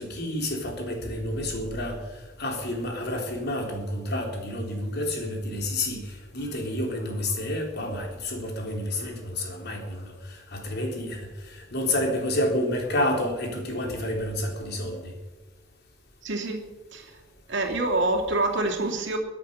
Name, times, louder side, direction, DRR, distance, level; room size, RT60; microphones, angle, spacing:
voice 1, 0.0-2.0 2.4-15.1, left 1 dB, 55° left, 3.6 m, -29 dB
voice 2, 16.2-16.7 16.9-17.1 17.5-19.2, right 2 dB, 60° right, 2.8 m, -26 dB
23.0 x 8.5 x 6.7 m
head